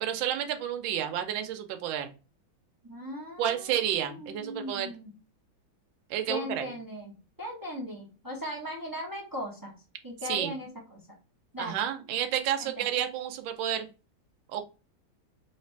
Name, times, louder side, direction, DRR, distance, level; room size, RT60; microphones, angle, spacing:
voice 1, 0.0-2.1 3.4-4.9 6.1-6.7 10.2-10.5 11.6-13.9 14.5-14.6, right 10 dB, 75° right, 7 dB, 1.4 m, -30 dB
voice 2, 2.8-5.1 6.3-9.7 10.0-11.0 11.5-11.8 12.8-12.9, left 1 dB, 25° right, -2 dB, 0.5 m, -38 dB
3.3 x 3.2 x 4.4 m, 0.31 s
omnidirectional pair, 2.3 m